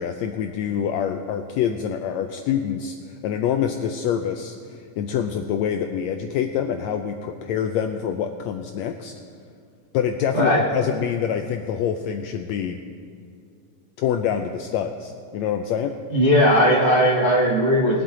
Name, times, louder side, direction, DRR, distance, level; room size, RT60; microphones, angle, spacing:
voice 1, 0.0-3.0 3.2-9.1 9.9-12.8 14.0-15.9, left 8 dB, 85° left, 6 dB, 1.5 m, -26 dB
voice 2, 10.3-10.6 16.1-18.0, equal, 85° right, -5 dB, 0.4 m, -18 dB
21.5 x 7.9 x 3.8 m, 2.4 s
omnidirectional pair, 3.6 m